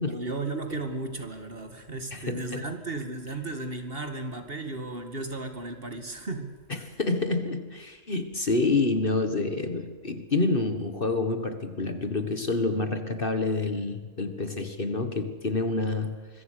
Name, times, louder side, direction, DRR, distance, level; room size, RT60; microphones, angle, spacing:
voice 1, 0.1-6.6, right 2 dB, 40° right, 6 dB, 2.4 m, -35 dB
voice 2, 2.1-2.7 6.7-16.4, left 3 dB, 40° left, 8 dB, 1.7 m, -28 dB
26.0 x 22.5 x 6.6 m, 1.4 s
omnidirectional pair, 1.4 m